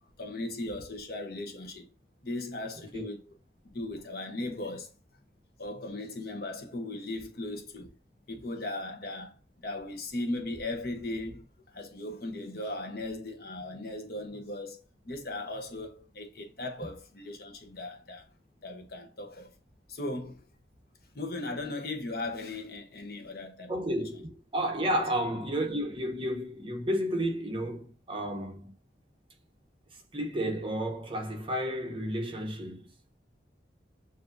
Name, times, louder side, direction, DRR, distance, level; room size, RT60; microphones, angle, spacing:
voice 1, 0.2-1.9 2.2-3.4 3.6-4.9 5.6-7.9 8.3-9.4 9.6-18.3 18.6-19.5 19.9-20.5 21.1-23.7 24.9-25.0, left 2 dB, 55° left, 0.9 m, -37 dB
voice 2, 23.7-28.7 30.1-32.9, equal, 30° right, 0.9 m, -32 dB
6.9 x 2.7 x 2.6 m
head